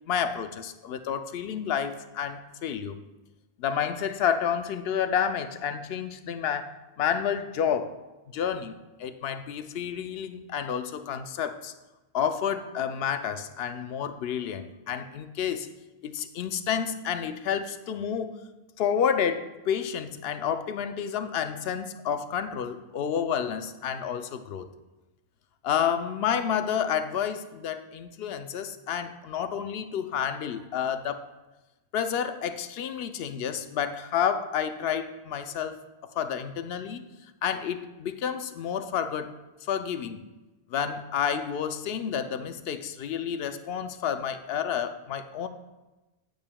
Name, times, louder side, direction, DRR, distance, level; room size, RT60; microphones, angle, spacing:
voice 1, 0.1-3.0 3.6-7.9 8.3-11.7 12.1-15.7 16.0-18.4 18.8-24.7 25.6-31.3 31.9-35.8 36.2-37.0 37.4-39.3 39.7-40.2 40.7-45.5, left 8 dB, 70° left, 9 dB, 0.8 m, -30 dB
8.9 x 8.6 x 2.2 m, 1.1 s
omnidirectional pair, 1.1 m